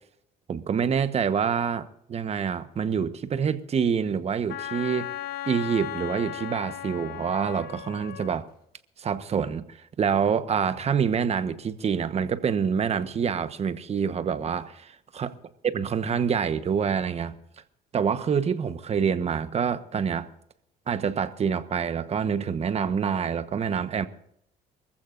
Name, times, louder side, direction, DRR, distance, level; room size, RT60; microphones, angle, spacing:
voice 1, 0.5-5.1 5.5-8.5 9.0-9.6 10.0-15.3 15.6-17.4 17.9-20.3 20.9-24.1, right 7 dB, 40° right, 1.2 m, -26 dB
Wind instrument woodwind instrument, 4.5-8.4, left 12 dB, 70° left, 1.6 m, -36 dB
24.0 x 15.0 x 2.6 m
cardioid pair, 110°, 17 cm